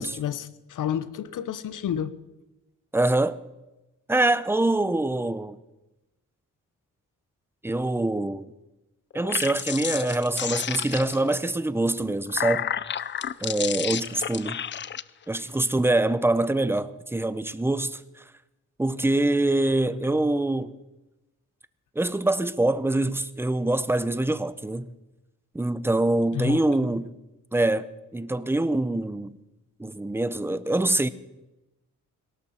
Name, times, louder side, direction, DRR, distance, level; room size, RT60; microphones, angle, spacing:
voice 1, 0.0-2.1 26.3-26.9, left 9 dB, 75° left, 1.0 m, -30 dB
voice 2, 2.9-3.4 4.1-5.6 7.6-8.5 9.1-12.7 13.4-14.6 15.3-18.2 18.8-20.7 22.0-24.9 25.5-27.1 27.5-29.4 29.8-31.1, right 2 dB, 5° right, 0.6 m, -24 dB
sound 1, 9.1-11.3 12.0-15.0, left 9 dB, 35° left, 0.4 m, -31 dB
19.0 x 17.5 x 4.3 m
cardioid pair, 125°, 32 cm